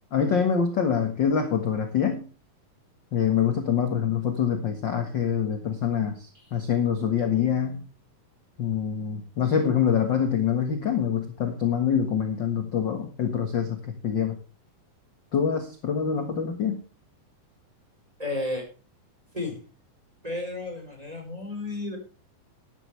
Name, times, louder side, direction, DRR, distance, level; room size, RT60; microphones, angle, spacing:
voice 1, 0.1-2.2 3.1-7.8 8.6-13.8 14.0-14.3 15.3-16.8, left 7 dB, 45° left, 6 dB, 1.5 m, -25 dB
voice 2, 18.2-18.7 19.3-19.6 20.2-22.0, left 2 dB, 10° right, 2 dB, 4.4 m, -32 dB
13.0 x 12.0 x 3.3 m, 0.35 s
omnidirectional pair, 4.1 m